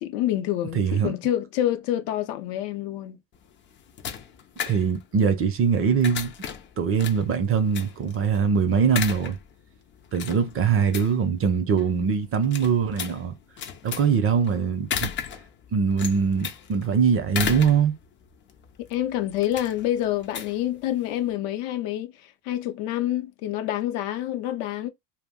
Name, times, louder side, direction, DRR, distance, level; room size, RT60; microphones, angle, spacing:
voice 1, 0.0-3.2 18.9-22.1 22.5-24.9, left 13 dB, 70° left, 0.6 m, -27 dB
voice 2, 0.7-1.1 4.7-6.3 6.8-9.4 10.1-13.3 13.8-15.1 15.7-17.9, right 6 dB, 35° right, 0.5 m, -22 dB
sound 1, 3.3-21.3, left 8 dB, 30° left, 0.3 m, -36 dB
2.3 x 2.0 x 3.5 m
supercardioid pair, 115°, 42 cm